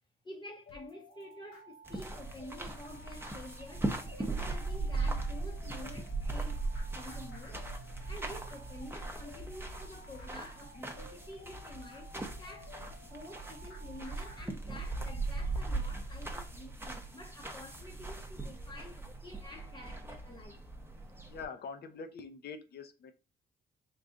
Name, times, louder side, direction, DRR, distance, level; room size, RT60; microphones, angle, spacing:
voice 1, 0.2-6.6 6.9-7.7 8.1-20.6, left 1 dB, 25° left, 0.8 m, -49 dB
sound 1, 0.7-14.5, left 2 dB, 85° left, 1.1 m, -55 dB
sound 2, 1.8-21.4, right 3 dB, 10° right, 0.7 m, -39 dB
voice 2, 21.3-23.1, left 5 dB, 55° left, 0.7 m, -44 dB
3.7 x 2.3 x 3.8 m
cardioid pair, 90°, 20 cm